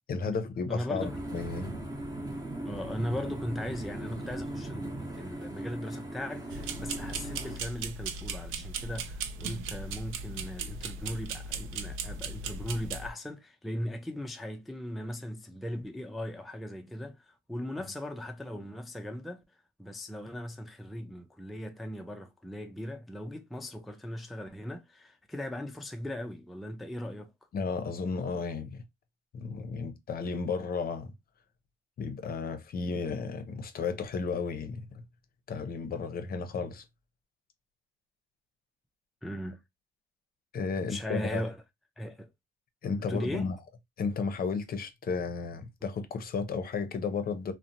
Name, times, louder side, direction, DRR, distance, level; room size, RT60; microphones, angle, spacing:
voice 1, 0.1-1.7 27.5-28.8 29.3-31.1 32.0-34.8 35.5-36.8 40.5-41.4 42.8-43.6 44.0-47.5, left 5 dB, 50° left, 0.6 m, -33 dB
voice 2, 0.7-1.2 2.6-19.4 19.8-27.3 39.2-39.6 40.9-41.6 42.0-42.3 43.1-43.5, equal, ahead, 0.4 m, -38 dB
sound 1, 1.0-7.6, right 1 dB, 20° right, 0.8 m, -38 dB
sound 2, 6.5-13.1, right 4 dB, 85° right, 0.4 m, -37 dB
2.7 x 2.1 x 2.5 m
cardioid pair, 90°, 20 cm